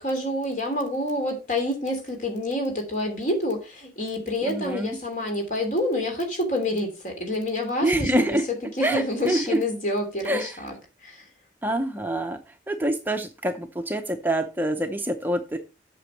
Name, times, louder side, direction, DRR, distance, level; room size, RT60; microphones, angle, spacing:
voice 1, 0.0-8.4 8.7-10.7 11.0-11.2, left 1 dB, 45° left, 3.0 m, -28 dB
voice 2, 4.4-5.0 7.8-8.5 8.8-9.6 10.3-10.6 11.6-12.4 12.7-15.6, right 1 dB, 10° right, 0.6 m, -26 dB
8.3 x 6.0 x 4.5 m
head